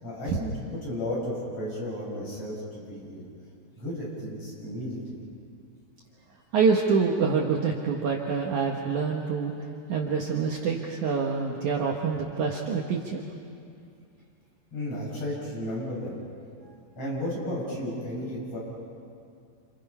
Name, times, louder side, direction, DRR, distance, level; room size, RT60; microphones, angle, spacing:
voice 1, 0.0-3.3 3.7-5.2 14.7-16.1 17.0-18.6, left 1 dB, 30° left, -5 dB, 7.9 m, -33 dB
voice 2, 6.5-9.5 9.9-13.2, right 5 dB, 85° right, 0 dB, 1.7 m, -26 dB
29.0 x 28.5 x 5.6 m, 2.4 s
omnidirectional pair, 5.8 m